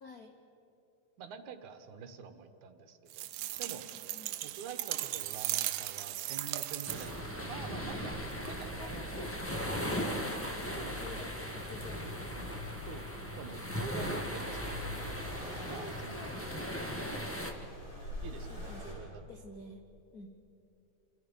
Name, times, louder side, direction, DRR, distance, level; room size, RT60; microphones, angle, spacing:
voice 1, 0.0-0.4 3.9-4.4 8.8-12.8 15.7-16.5 17.0-17.3 18.5-19.0 19.3-19.8 20.1-20.4, left 2 dB, 70° left, 4 dB, 0.8 m, -50 dB
voice 2, 1.2-3.3 3.6-4.0 4.4-9.4 10.8-11.3 12.9-16.4 18.2-19.2, right 6 dB, 70° right, 8 dB, 2.6 m, -47 dB
sound 1, 3.1-7.3, right 15 dB, 90° right, 2.3 m, -37 dB
sound 2, 6.8-17.5, equal, 10° left, 0.7 m, -38 dB
Accelerating revving vroom, 7.0-18.9, left 1 dB, 40° left, 8.2 m, -46 dB
28.0 x 28.0 x 5.4 m, 2.8 s
omnidirectional pair, 3.6 m